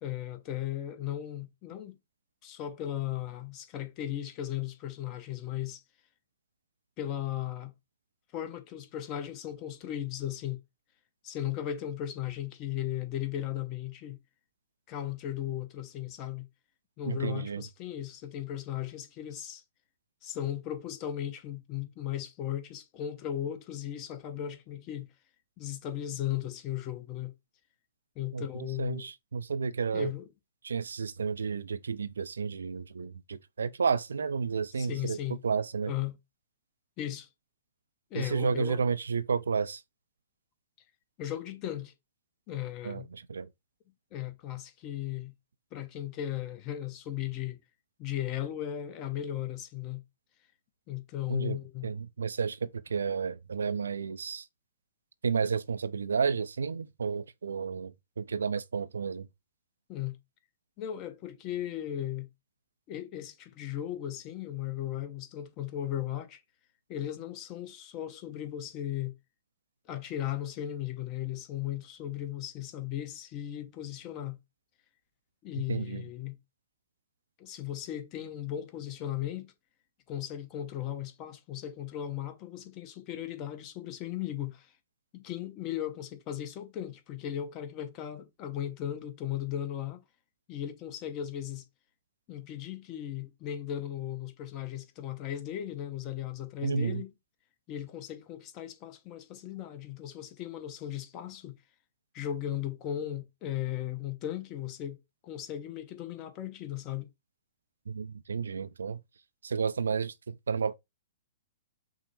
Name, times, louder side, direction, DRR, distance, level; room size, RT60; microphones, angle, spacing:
voice 1, 0.0-2.0 2.4-5.8 7.0-7.7 8.3-10.6 11.2-14.2 14.9-16.5 17.0-19.6 20.2-25.1 25.6-27.3 28.2-29.1 29.9-30.3 34.8-35.4 35.9-36.2 37.0-37.3 38.1-38.8 41.2-41.9 42.5-43.1 44.1-45.3 45.7-47.6 48.0-50.0 50.9-51.9 59.9-60.2 60.8-62.3 62.9-66.4 66.9-69.1 69.9-74.4 75.4-76.4 77.4-79.5 80.1-84.7 85.1-90.0 90.5-91.6 92.3-97.1 97.7-101.6 102.1-107.1, left 11 dB, 35° left, 0.8 m, -36 dB
voice 2, 17.1-17.6 28.3-28.4 28.8-30.1 30.6-35.2 35.4-35.9 38.1-39.8 42.8-43.5 51.3-51.6 51.8-54.5 55.2-59.3 75.7-76.1 96.6-97.0 107.9-109.0 109.4-110.7, right 5 dB, 75° right, 0.3 m, -31 dB
6.0 x 2.1 x 3.0 m
figure-of-eight pair, 115°, 0 cm